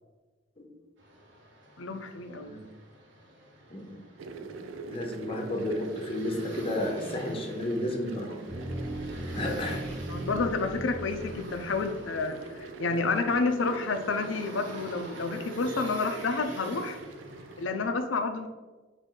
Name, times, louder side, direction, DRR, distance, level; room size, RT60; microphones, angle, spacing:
sound 1, 1.0-17.9, right 1 dB, 70° right, 1.0 m, -48 dB
voice 1, 1.8-2.5 10.1-17.0 17.6-18.5, left 3 dB, 75° left, 7 dB, 0.5 m, -30 dB
voice 2, 3.7-4.0 4.9-8.5 9.3-9.8, left 1 dB, 30° left, 1 dB, 0.7 m, -32 dB
sound 2, 4.2-17.7, right 4 dB, 90° right, 0.4 m, -44 dB
sound 3, 8.5-12.4, right 1 dB, ahead, 1.2 m, -38 dB
5.3 x 2.7 x 3.7 m, 1.3 s
head